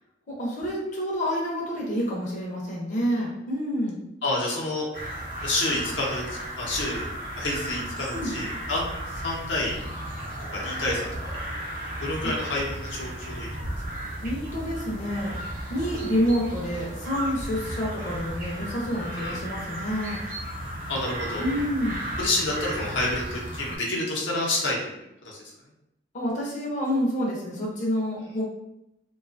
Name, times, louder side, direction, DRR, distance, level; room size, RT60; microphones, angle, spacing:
voice 1, 0.3-4.0 8.1-8.3 12.2-12.3 14.2-15.3 15.7-20.2 21.4-22.0 26.1-28.4, equal, 45° left, -4 dB, 0.6 m, -28 dB
voice 2, 4.2-4.9 5.4-7.1 7.4-8.9 9.2-9.7 10.5-11.4 12.0-13.7 19.1-19.4 20.9-21.5 22.2-25.4, left 2 dB, 85° left, -3 dB, 0.7 m, -29 dB
sound 1, 4.9-23.8, right 1 dB, 50° right, 0.7 m, -35 dB
2.5 x 2.3 x 2.4 m, 0.85 s
head